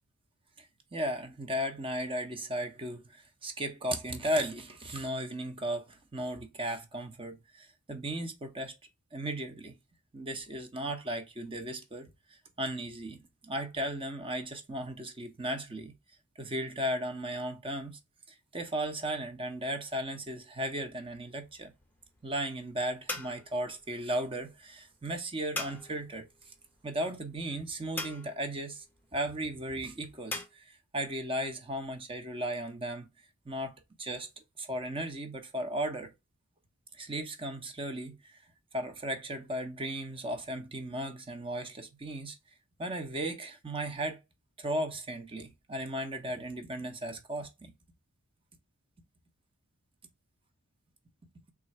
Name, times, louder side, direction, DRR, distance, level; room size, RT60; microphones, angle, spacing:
voice 1, 0.9-8.7 9.1-9.7 10.1-15.9 16.4-18.0 18.5-21.7 22.2-26.3 26.8-28.8 29.1-33.1 33.5-34.3 34.6-36.1 37.0-38.4 38.7-42.4 42.8-44.2 44.6-47.7, right 1 dB, 25° right, 0.7 m, -36 dB
sound 1, 20.8-30.5, left 2 dB, 10° left, 0.8 m, -44 dB
3.6 x 2.5 x 4.2 m
head